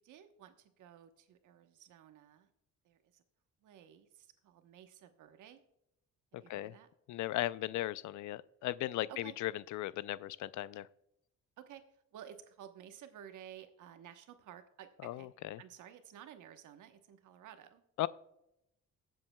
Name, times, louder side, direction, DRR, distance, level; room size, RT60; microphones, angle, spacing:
voice 1, 0.0-2.5 2.8-3.2 3.6-5.6 6.4-6.9 9.1-9.3 11.6-11.8 12.1-15.3 15.6-17.8, right 10 dB, 80° right, 8 dB, 1.1 m, -54 dB
voice 2, 6.3-6.7 7.1-10.9 15.0-15.6 18.0-18.1, left 15 dB, 75° left, 18 dB, 0.5 m, -37 dB
19.0 x 7.7 x 2.3 m, 0.83 s
cardioid pair, 90°, 30 cm